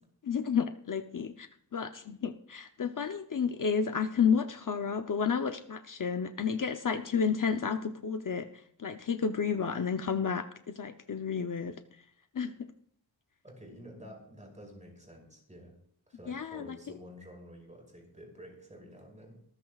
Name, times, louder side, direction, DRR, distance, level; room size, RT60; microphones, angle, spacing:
voice 1, 0.2-10.5 10.7-12.0 12.3-12.5 16.3-16.7, left 6 dB, 55° left, 7 dB, 0.8 m, -31 dB
voice 2, 13.4-15.8 16.1-19.4, equal, 20° right, 1 dB, 5.4 m, -50 dB
23.5 x 14.0 x 2.4 m, 0.66 s
wide cardioid pair, 115°, 39 cm